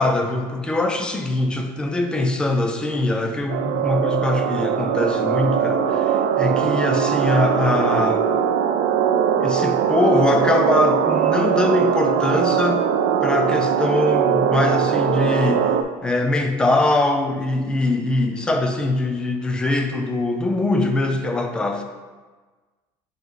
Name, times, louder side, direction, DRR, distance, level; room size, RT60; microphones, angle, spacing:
voice 1, 0.0-8.2 9.4-12.9 13.2-15.7 16.0-21.8, left 2 dB, 10° left, 5 dB, 0.4 m, -22 dB
sound 1, 3.5-15.8, right 8 dB, 75° right, 0.5 m, -20 dB
5.0 x 4.6 x 4.0 m, 1.3 s
cardioid pair, 175°, 10 cm